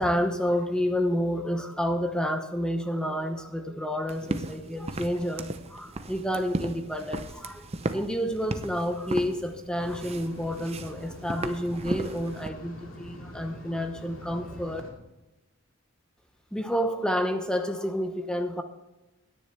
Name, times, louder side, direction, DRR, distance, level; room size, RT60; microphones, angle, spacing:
voice 1, 0.0-14.8 16.5-18.6, equal, 5° left, 6 dB, 0.9 m, -29 dB
sound 1, 4.1-12.5, right 2 dB, 30° right, 0.7 m, -36 dB
sound 2, 9.7-14.9, left 1 dB, 65° left, 2.6 m, -44 dB
17.5 x 10.0 x 3.3 m, 1.0 s
head